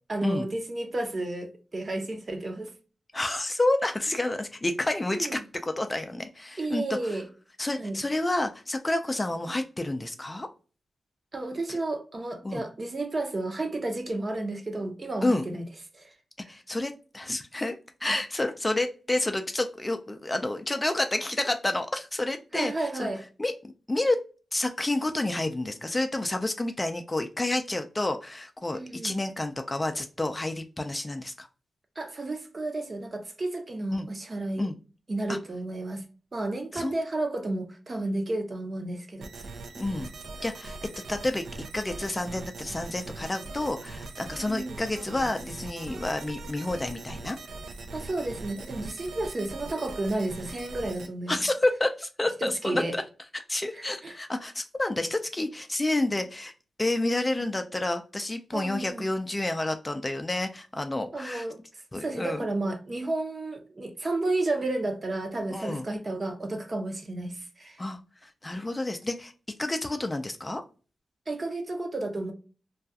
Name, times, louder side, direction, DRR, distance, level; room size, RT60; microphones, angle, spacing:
voice 1, 0.1-2.7 5.1-5.4 6.6-7.3 7.8-8.0 11.3-15.7 15.9-16.1 16.4-16.5 22.5-23.2 28.7-29.1 32.0-34.7 35.1-36.0 36.3-39.3 44.3-44.8 47.9-51.4 52.4-53.0 53.7-54.2 58.5-59.1 61.1-67.8 71.3-72.3, right 2 dB, 40° right, 0.6 m, -32 dB
voice 2, 3.1-6.8 7.6-10.5 11.7-11.8 12.4-12.6 15.2-15.4 16.5-23.1 23.4-23.5 23.9-24.2 24.5-31.5 33.9-34.1 34.6-34.7 35.3-35.4 36.7-36.9 39.8-40.1 40.4-40.8 41.1-41.4 41.7-47.4 51.3-53.0 53.3-56.5 56.8-61.5 61.9-62.5 65.5-65.9 67.8-69.3 69.6-70.6, left 2 dB, 20° left, 0.3 m, -29 dB
sound 1, 39.2-51.1, right 3 dB, 80° right, 0.4 m, -41 dB
2.3 x 2.2 x 2.6 m
cardioid pair, 75°, 0 cm